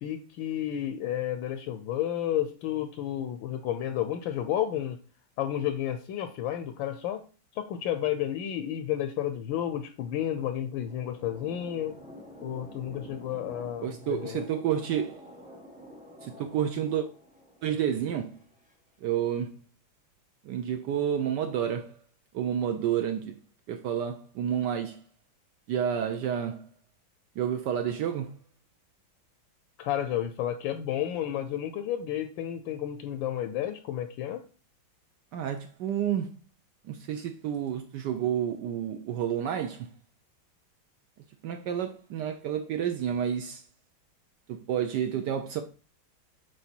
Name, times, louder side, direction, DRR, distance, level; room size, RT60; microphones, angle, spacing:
voice 1, 0.0-5.0 5.4-7.2 7.5-12.0 12.4-14.4 29.8-34.4, left 11 dB, 80° left, 1.3 m, -31 dB
Dark Atmos, 10.6-18.7, equal, 10° right, 0.3 m, -49 dB
voice 2, 13.8-15.2 16.2-17.1 17.6-18.3 19.0-19.5 20.4-21.9 22.3-23.4 23.7-25.0 25.7-26.7 27.4-28.3 35.3-36.3 36.8-39.9 41.4-43.6 44.5-45.6, right 9 dB, 70° right, 1.1 m, -30 dB
7.9 x 3.4 x 4.4 m
omnidirectional pair, 2.2 m